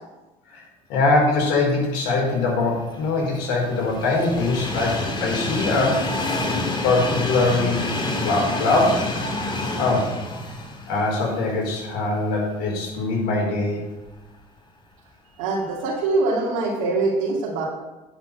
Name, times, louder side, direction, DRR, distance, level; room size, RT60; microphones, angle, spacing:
voice 1, 0.9-6.1 6.8-7.9 8.2-9.1 9.8-10.1 10.9-13.8, left 3 dB, 75° left, -1 dB, 4.4 m, -22 dB
Train, 2.3-12.5 12.9-13.0 14.1-14.2, left 2 dB, 25° left, 2.3 m, -28 dB
voice 2, 15.4-17.6, right 3 dB, 80° right, -5 dB, 2.5 m, -23 dB
10.0 x 6.0 x 8.2 m, 1.1 s
supercardioid pair, 80°, 17 cm